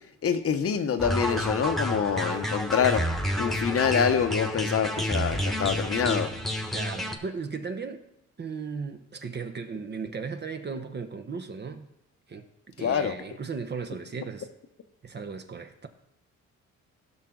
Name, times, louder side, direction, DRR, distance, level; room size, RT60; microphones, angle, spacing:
voice 1, 0.2-3.0 3.4-6.3 12.8-13.1, left 7 dB, 50° left, 10 dB, 0.9 m, -26 dB
sound 1, 1.0-7.2, equal, ahead, 1.2 m, -29 dB
voice 2, 6.7-8.0 8.4-11.9 12.3-14.5 15.0-15.9, right 5 dB, 35° right, 7 dB, 0.9 m, -36 dB
16.0 x 5.8 x 3.8 m, 0.84 s
cardioid pair, 90°, 30 cm